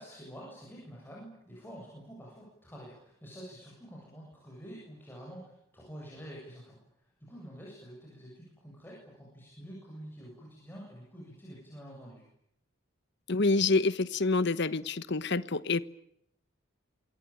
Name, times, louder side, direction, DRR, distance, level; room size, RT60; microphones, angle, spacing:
voice 1, 0.0-12.3, equal, 10° left, -4 dB, 7.9 m, -48 dB
voice 2, 13.3-15.8, left 3 dB, 55° left, 15 dB, 1.1 m, -27 dB
27.0 x 22.0 x 9.0 m, 0.75 s
head